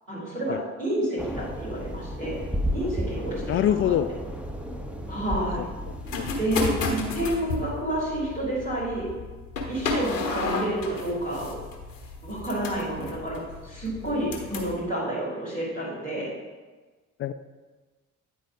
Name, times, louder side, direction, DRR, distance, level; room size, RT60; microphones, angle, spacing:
voice 1, 0.1-2.4 2.7-3.4 3.7-3.9 5.1-5.7 6.4-9.0 9.7-11.5 12.2-16.3, right 1 dB, 85° right, -11 dB, 2.7 m, -29 dB
sound 1, 1.2-7.4, equal, 5° right, 0.7 m, -33 dB
voice 2, 3.5-4.1 5.6-6.3 17.2-17.3, left 11 dB, 35° left, 11 dB, 0.4 m, -26 dB
sound 2, 5.9-14.8, left 3 dB, 80° left, 0.9 m, -33 dB
9.3 x 4.2 x 4.7 m, 1.3 s
figure-of-eight pair, 45°, 38 cm